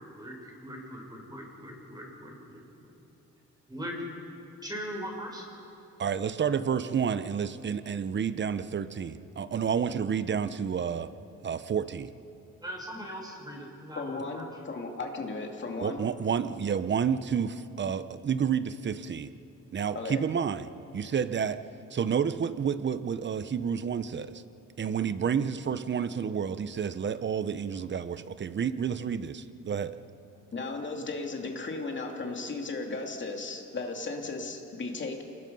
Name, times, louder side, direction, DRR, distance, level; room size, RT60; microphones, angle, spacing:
voice 1, 0.0-2.6 3.7-3.9 4.6-5.5 12.6-14.4, equal, 15° right, -1 dB, 6.2 m, -40 dB
voice 2, 6.0-11.1 11.4-12.1 15.8-19.3 19.7-21.6 21.9-24.4 24.8-29.9, right 7 dB, 40° right, 13 dB, 0.9 m, -30 dB
voice 3, 14.0-16.0 19.9-20.2 30.5-35.2, left 3 dB, 40° left, 2 dB, 2.8 m, -35 dB
28.0 x 20.0 x 5.5 m, 2.8 s
cardioid pair, 90°, 30 cm